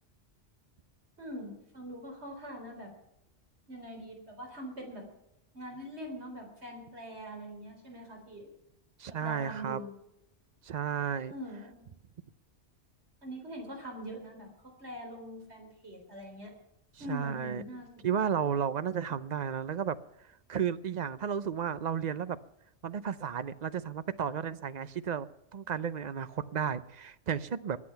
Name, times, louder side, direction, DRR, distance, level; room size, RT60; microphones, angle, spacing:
voice 1, 1.2-2.9 3.7-5.0 5.5-8.5 9.2-9.9 11.3-11.9 13.2-16.5 17.0-17.9, equal, 65° right, 1 dB, 4.1 m, -43 dB
voice 2, 9.0-9.8 10.6-11.3 17.1-17.6 18.0-20.0 20.5-22.4 22.8-25.3 25.5-27.8, right 8 dB, 45° right, 14 dB, 0.7 m, -33 dB
22.0 x 8.5 x 5.8 m, 0.85 s
omnidirectional pair, 1.2 m